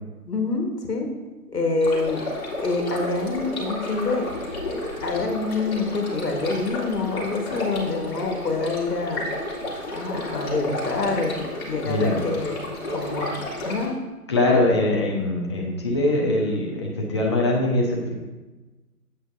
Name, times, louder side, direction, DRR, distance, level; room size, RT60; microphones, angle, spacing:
voice 1, 0.3-1.1 1.5-2.2 2.6-4.3 5.0-9.3 9.9-11.4 11.7-12.5 12.9-14.0, left 3 dB, 80° left, 2 dB, 1.7 m, -26 dB
sound 1, 1.8-13.9, left 1 dB, 40° left, 2.5 m, -32 dB
voice 2, 11.8-12.2 14.3-18.1, left 2 dB, 20° left, -3 dB, 0.9 m, -22 dB
8.3 x 8.1 x 2.7 m, 1.2 s
figure-of-eight pair, 155°, 47 cm